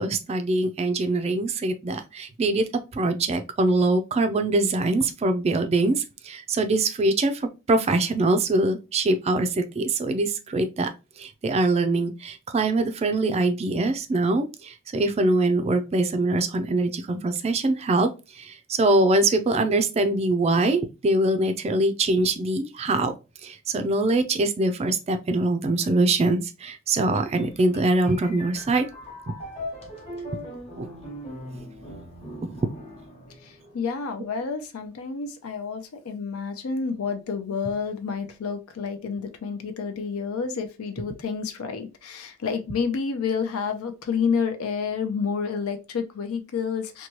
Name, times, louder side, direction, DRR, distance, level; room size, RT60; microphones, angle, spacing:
voice 1, 0.0-10.9 11.2-23.1 23.4-28.9 30.8-30.9, right 2 dB, 30° right, 8 dB, 0.3 m, -23 dB
sound 1, 27.1-33.8, left 1 dB, 30° left, 0.9 m, -40 dB
voice 2, 33.4-47.1, left 5 dB, 85° left, 8 dB, 0.5 m, -29 dB
2.9 x 2.2 x 2.9 m, 0.28 s
head